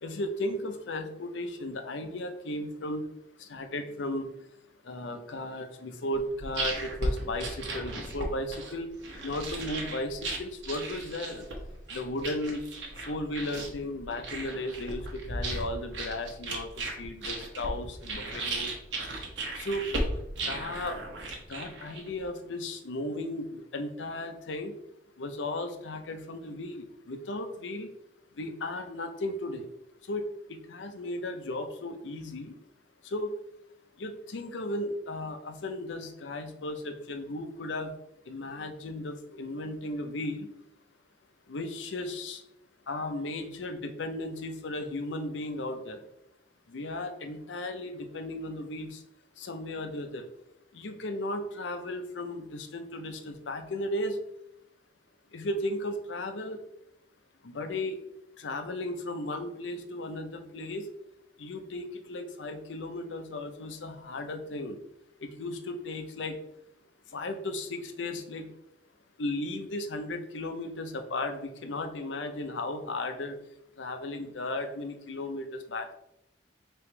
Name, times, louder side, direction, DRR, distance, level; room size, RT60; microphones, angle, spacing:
voice 1, 0.0-3.1 3.4-4.6 4.8-8.9 9.2-11.5 11.9-12.6 13.0-18.8 19.5-19.9 20.4-21.0 21.5-24.7 25.2-27.9 28.3-29.7 30.0-32.6 33.0-33.4 34.0-37.9 38.2-40.5 41.5-42.4 42.9-46.0 46.7-49.0 49.4-50.3 50.7-54.2 55.3-56.6 57.4-58.0 58.4-60.9 61.4-64.8 65.2-66.4 67.1-68.5 69.2-73.4 73.8-75.9, left 1 dB, 80° left, 7 dB, 0.6 m, -35 dB
sound 1, 6.1-22.2, right 2 dB, 80° right, 0.9 m, -36 dB
3.4 x 3.0 x 4.5 m, 0.80 s
head